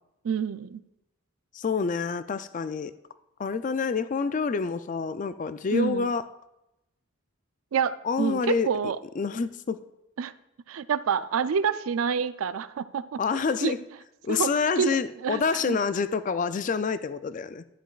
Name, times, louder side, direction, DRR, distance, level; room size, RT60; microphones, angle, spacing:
voice 1, 0.2-0.8 5.7-6.1 7.7-9.0 10.2-10.3 10.7-13.2 13.6-13.7 14.3-14.5 14.8-15.4 15.7-15.8, right 6 dB, 80° right, 14 dB, 0.4 m, -27 dB
voice 2, 1.5-2.9 3.4-6.2 8.0-8.7 9.2-9.8 13.2-13.8 14.2-17.6, left 5 dB, 35° left, 13 dB, 0.3 m, -27 dB
11.5 x 9.8 x 2.4 m, 0.89 s
head